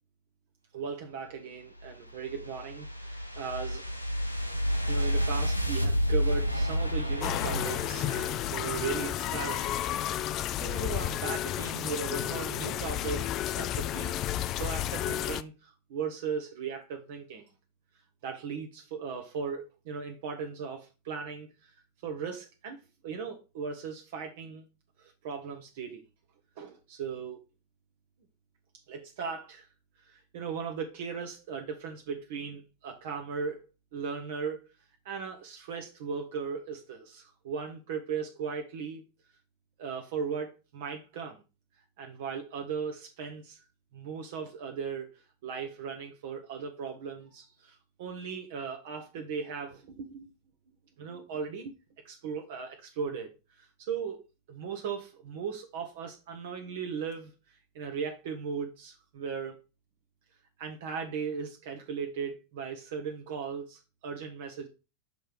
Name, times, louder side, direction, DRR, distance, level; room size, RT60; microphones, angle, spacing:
voice 1, 0.7-3.8 4.9-9.7 10.1-14.1 14.5-17.4 18.2-21.7 22.0-24.6 25.0-26.0 26.6-27.4 28.9-29.7 30.0-33.6 33.9-34.6 35.0-39.0 39.8-41.4 42.0-43.6 43.9-50.3 51.0-51.7 52.0-54.2 54.5-59.6 60.6-64.7, right 6 dB, 55° right, 3 dB, 0.9 m, -37 dB
sound 1, 1.8-9.0, equal, 90° left, 0.7 m, -30 dB
sound 2, 7.2-15.4, left 12 dB, 35° left, 0.3 m, -32 dB
6.3 x 3.3 x 5.1 m, 0.30 s
figure-of-eight pair, 90°, 0 cm